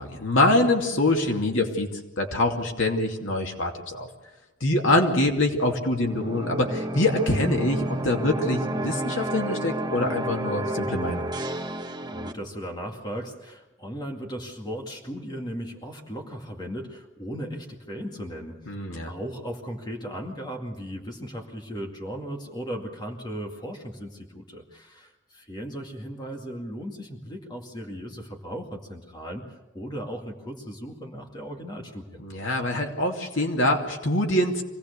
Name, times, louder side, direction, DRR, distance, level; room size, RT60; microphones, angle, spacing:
voice 1, 0.0-1.9 2.2-4.1 4.6-11.3 18.7-19.1 32.2-34.6, left 1 dB, 75° left, 2 dB, 2.6 m, -24 dB
sound 1, 5.9-12.3, right 1 dB, 20° right, 1.3 m, -31 dB
voice 2, 12.1-18.6 19.0-32.2, equal, 20° left, 2 dB, 2.2 m, -37 dB
25.0 x 18.0 x 6.8 m, 1.1 s
head